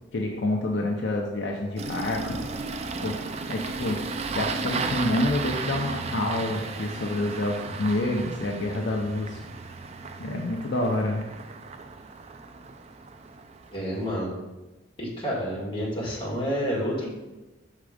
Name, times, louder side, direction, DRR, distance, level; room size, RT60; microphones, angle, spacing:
voice 1, 0.1-2.4 3.0-3.2 3.5-4.0 4.3-9.4 10.2-11.3, left 1 dB, 60° left, 0 dB, 0.6 m, -28 dB
Engine starting, 1.8-14.2, right 4 dB, 35° right, 0.3 m, -35 dB
voice 2, 13.7-14.3 15.0-17.1, equal, 25° left, -4 dB, 1.7 m, -29 dB
5.9 x 3.7 x 5.0 m, 1.1 s
head